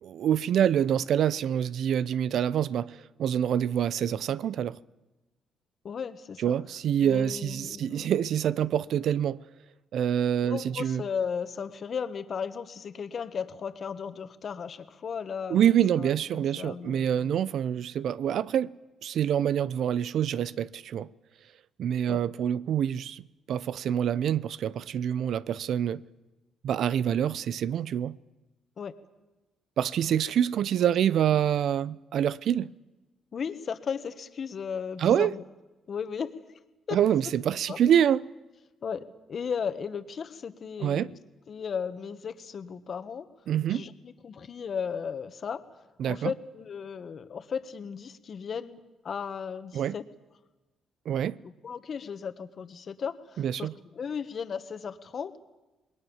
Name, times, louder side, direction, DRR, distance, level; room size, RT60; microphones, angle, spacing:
voice 1, 0.0-4.8 6.4-9.4 9.9-11.0 15.5-18.7 19.0-21.1 21.8-26.0 26.6-28.2 29.8-32.7 35.0-35.3 36.9-38.2 40.8-41.1 43.5-43.9 46.0-46.3 49.7-49.9 51.1-51.4 53.4-53.7, right 9 dB, 70° right, 0.7 m, -26 dB
voice 2, 5.8-6.5 7.0-8.1 10.4-17.4 22.1-22.2 28.8-28.9 30.8-30.9 33.3-35.4 35.9-36.3 36.9-37.0 37.7-37.8 38.8-41.2 41.5-43.3 43.7-45.6 46.1-48.8 49.0-50.0 51.4-55.4, left 6 dB, 50° left, 1.7 m, -35 dB
28.0 x 21.0 x 7.3 m
cardioid pair, 90°, 0 cm